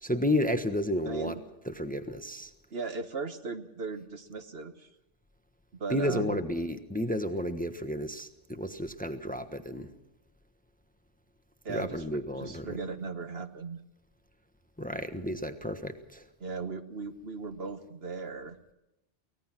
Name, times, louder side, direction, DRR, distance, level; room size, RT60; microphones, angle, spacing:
voice 1, 0.0-1.4 1.6-2.5 5.9-9.9 11.7-12.7 14.8-16.2, left 1 dB, 10° left, 9 dB, 1.1 m, -32 dB
voice 2, 1.0-1.4 2.7-4.9 5.7-6.4 11.6-12.0 12.3-13.8 16.4-18.7, right 4 dB, 60° right, 9 dB, 1.5 m, -37 dB
24.0 x 18.5 x 6.0 m, 0.92 s
omnidirectional pair, 1.2 m